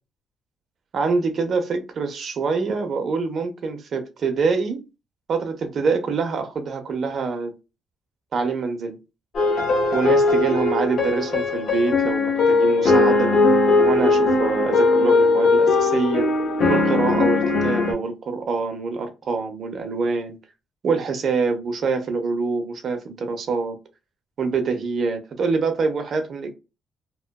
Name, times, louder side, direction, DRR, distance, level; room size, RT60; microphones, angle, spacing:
voice 1, 0.9-4.8 5.3-7.5 8.3-9.0 9.9-13.3 13.9-16.3 16.7-20.4 20.8-23.8 24.4-26.5, right 4 dB, 55° right, 0.7 m, -25 dB
sound 1, 9.3-17.9, left 3 dB, 60° left, 1.0 m, -19 dB
2.9 x 2.2 x 2.2 m
cardioid pair, 90°, 0 cm